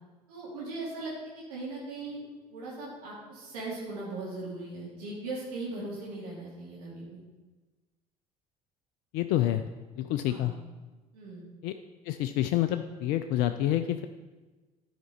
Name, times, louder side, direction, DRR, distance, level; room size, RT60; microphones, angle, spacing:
voice 1, 0.3-2.2 2.5-7.2 10.3-10.6 11.1-11.4, right 2 dB, 70° right, -5 dB, 2.2 m, -39 dB
voice 2, 9.1-9.6 10.0-10.5 11.6-11.7 12.0-14.1, left 13 dB, 55° left, 9 dB, 0.4 m, -28 dB
10.5 x 5.0 x 4.5 m, 1.2 s
figure-of-eight pair, 60°, 20 cm